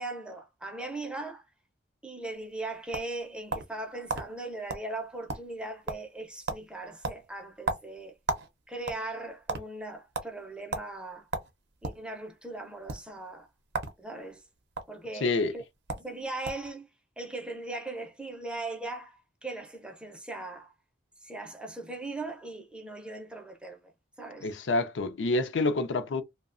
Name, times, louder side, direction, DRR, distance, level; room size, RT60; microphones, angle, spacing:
voice 1, 0.0-1.4 2.0-8.2 8.7-11.3 11.8-13.5 14.0-14.4 14.9-15.6 15.9-16.9 17.2-20.7 21.2-23.8 24.2-24.5, right 2 dB, 5° right, 0.5 m, -39 dB
sound 1, 2.4-3.8 4.1-4.3 4.7-4.9 5.1-5.6 5.9-6.2 6.5-6.7 7.0-8.5 8.8-9.6 10.1-10.3 10.7-10.9 11.3-12.0 12.8-13.0 13.7-14.0 14.2-14.8 15.6-15.7 15.9-16.1 16.4-16.7, right 3 dB, 60° right, 0.5 m, -33 dB
voice 2, 15.2-15.5 24.4-26.2, left 2 dB, 70° left, 0.5 m, -27 dB
2.7 x 2.1 x 2.4 m
head